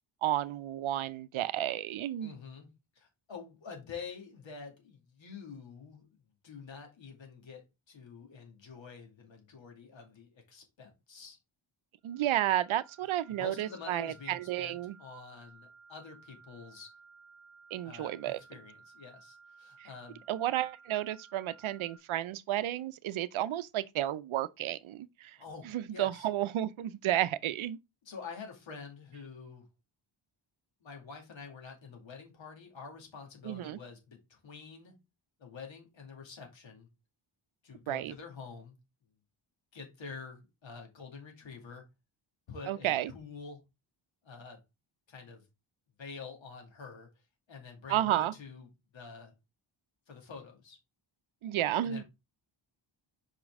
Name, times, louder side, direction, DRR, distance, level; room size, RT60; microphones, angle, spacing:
voice 1, 0.2-2.3 12.0-15.0 17.7-18.4 19.8-19.9 20.3-25.4 25.6-27.8 33.4-33.8 37.9-38.1 42.7-43.1 47.9-48.3 51.4-52.0, right 13 dB, 75° right, 0.6 m, -32 dB
voice 2, 2.2-2.7 3.0-11.4 13.3-16.9 17.8-20.2 25.4-26.3 28.0-29.7 30.8-34.9 35.4-36.9 37.6-38.8 39.7-41.8 42.5-43.6 44.2-44.6 45.1-45.4 46.0-47.1 47.5-49.3 50.1-50.8 51.8-52.0, left 5 dB, 65° left, 2.2 m, -47 dB
sound 1, 12.0-22.0, right 5 dB, 40° right, 1.2 m, -58 dB
5.7 x 5.2 x 3.6 m
wide cardioid pair, 155°, 49 cm